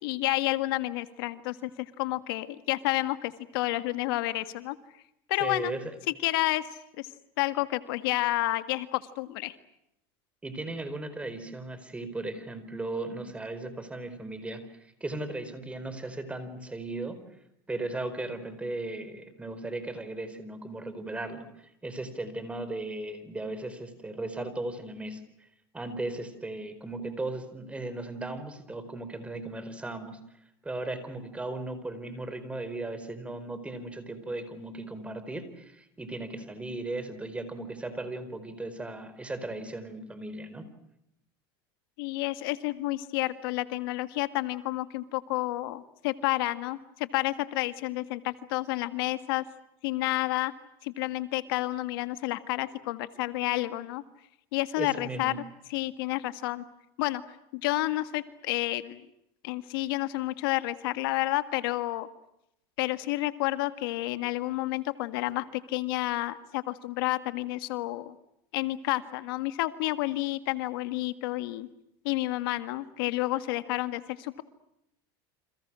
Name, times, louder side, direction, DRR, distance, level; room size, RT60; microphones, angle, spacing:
voice 1, 0.0-4.8 5.3-5.7 6.2-6.6 7.0-7.1 7.4-9.5 42.0-49.4 49.8-50.5 50.8-54.0 54.5-55.3 55.7-56.6 57.0-57.2 57.5-59.0 59.4-62.1 62.8-68.1 68.5-71.7 72.0-74.4, left 18 dB, 75° left, 11 dB, 1.8 m, -30 dB
voice 2, 5.4-5.9 10.4-17.2 17.7-25.2 25.7-30.2 30.6-40.7 54.8-55.4, right 2 dB, 10° right, 11 dB, 4.7 m, -36 dB
30.0 x 27.0 x 6.3 m, 0.80 s
supercardioid pair, 130°, 12 cm